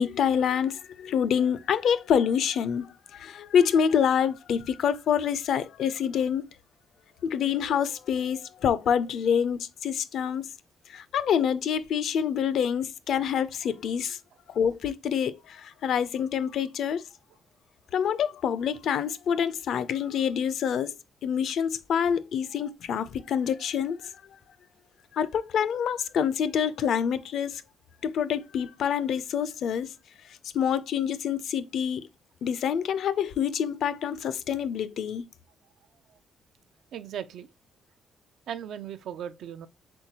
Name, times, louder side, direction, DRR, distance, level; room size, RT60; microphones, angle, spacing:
voice 1, 0.0-6.4 7.2-10.5 10.9-14.2 14.5-17.0 17.9-20.9 21.2-24.1 25.1-27.6 28.0-29.9 30.5-32.0 32.4-35.2, left 8 dB, 70° left, 0.4 m, -26 dB
voice 2, 36.9-37.5 38.5-39.7, right 9 dB, 75° right, 0.4 m, -37 dB
4.4 x 3.7 x 2.8 m
cardioid pair, 90°, 0 cm